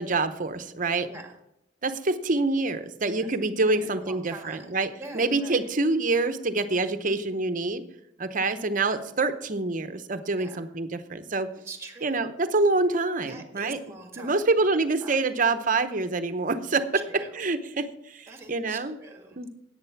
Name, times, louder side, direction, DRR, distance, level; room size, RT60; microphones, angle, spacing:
voice 1, 0.0-1.1 1.8-7.8 8.2-11.5 12.0-13.8 14.2-16.8 17.4-19.0 19.4-19.5, right 3 dB, 45° right, 10 dB, 0.8 m, -26 dB
voice 2, 1.0-1.4 3.2-3.3 3.7-5.7 10.4-10.6 11.6-12.4 13.3-14.6 15.0-15.2 17.1-17.4 18.3-19.5, right 3 dB, 15° right, 4 dB, 1.9 m, -44 dB
10.5 x 8.9 x 5.9 m, 0.81 s
head